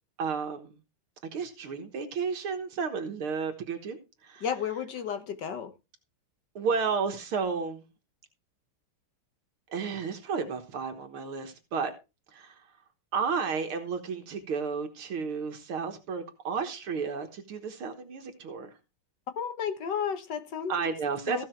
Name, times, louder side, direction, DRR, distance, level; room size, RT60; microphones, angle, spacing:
voice 1, 0.2-0.7 1.3-4.0 4.2-4.4 6.6-7.8 9.7-11.9 12.3-12.5 13.1-18.7 20.7-21.4, right 5 dB, 75° right, 2.3 m, -32 dB
voice 2, 4.4-5.7 19.4-20.9 21.3-21.4, left 7 dB, 60° left, 1.7 m, -32 dB
15.5 x 5.9 x 4.5 m
omnidirectional pair, 2.3 m